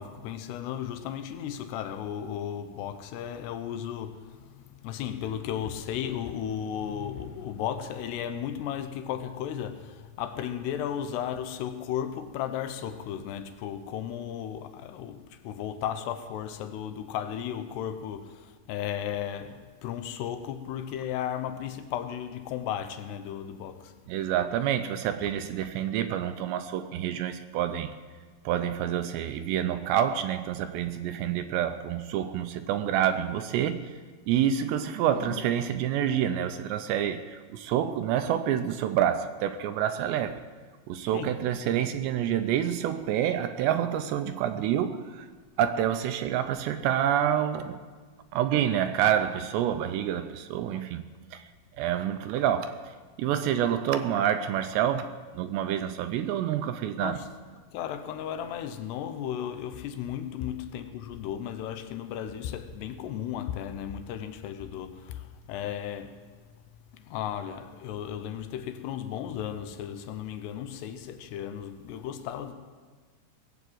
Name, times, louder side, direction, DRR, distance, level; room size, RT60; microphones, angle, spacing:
voice 1, 0.0-23.9 35.1-35.5 41.1-41.4 57.0-57.3 57.7-66.2 66.9-72.5, left 9 dB, 80° left, 2.5 m, -35 dB
voice 2, 24.1-27.9 28.5-33.9 34.3-40.4 40.9-45.3 45.6-47.8 48.3-51.1 51.3-51.4 51.8-57.2, right 10 dB, 80° right, 2.6 m, -28 dB
19.5 x 8.1 x 7.7 m
omnidirectional pair, 5.3 m